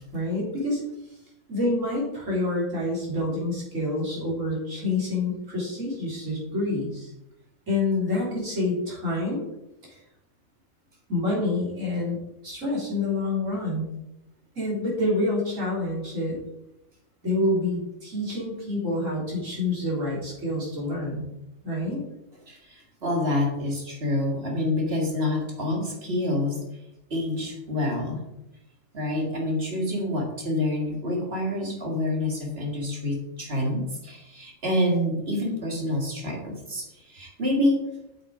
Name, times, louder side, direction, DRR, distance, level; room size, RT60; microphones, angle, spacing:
voice 1, 0.1-0.8 1.1-1.2 1.5-7.1 7.7-9.4 9.8-10.0 11.1-12.2 12.4-13.9 14.6-16.4 17.2-21.2 21.6-22.0, left 2 dB, 70° right, -4 dB, 4.0 m, -27 dB
voice 2, 22.5-26.6 27.1-28.2 28.9-37.9, left 1 dB, 50° right, 0 dB, 2.4 m, -27 dB
8.2 x 6.8 x 5.0 m, 0.88 s
omnidirectional pair, 1.4 m